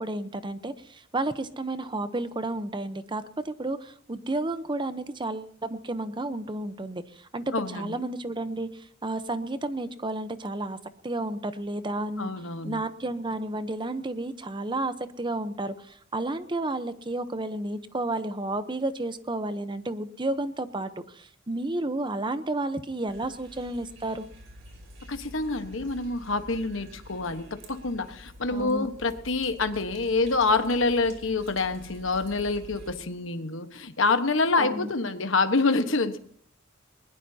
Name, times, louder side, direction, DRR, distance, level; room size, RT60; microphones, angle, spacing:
voice 1, 0.0-10.8 11.0-12.3 12.6-24.2 28.5-28.9 34.6-34.9, right 2 dB, 25° right, 11 dB, 0.8 m, -32 dB
voice 2, 7.5-7.9 12.2-12.8 25.1-36.2, left 3 dB, 65° left, 8 dB, 1.3 m, -26 dB
sound 1, 23.1-33.0, equal, 65° right, 5.3 m, -48 dB
20.5 x 20.5 x 2.8 m, 0.63 s
head